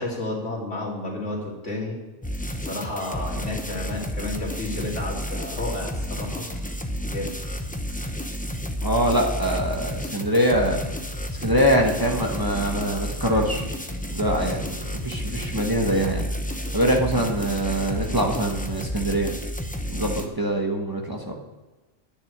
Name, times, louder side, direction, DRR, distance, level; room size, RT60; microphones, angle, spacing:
voice 1, 0.0-2.0 2.6-6.5 7.0-7.3 7.9-8.2 14.3-14.5, left 2 dB, 75° left, -3 dB, 2.9 m, -32 dB
sound 1, 2.2-20.3, equal, 10° left, 0.6 m, -31 dB
voice 2, 8.8-10.8 11.4-13.7 14.0-16.3 16.7-19.3 19.9-21.3, equal, 20° right, 1 dB, 1.1 m, -24 dB
10.0 x 6.3 x 8.5 m, 1.2 s
omnidirectional pair, 1.2 m